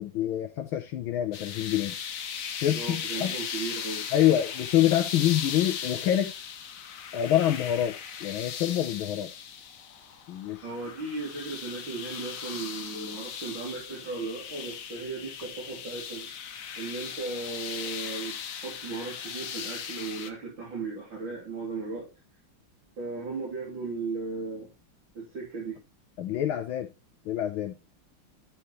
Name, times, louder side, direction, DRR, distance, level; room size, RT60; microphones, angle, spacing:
voice 1, 0.0-1.9 2.6-3.3 4.1-6.3 7.1-9.3 10.3-10.7 26.2-26.9 27.2-27.7, left 12 dB, 75° left, 1.6 m, -26 dB
sound 1, 1.3-20.3, left 8 dB, 55° left, 1.0 m, -38 dB
voice 2, 2.7-4.1 10.6-16.3 16.8-22.1 23.0-24.7 25.2-25.8, right 3 dB, 65° right, 3.7 m, -36 dB
12.0 x 4.8 x 3.1 m
omnidirectional pair, 2.3 m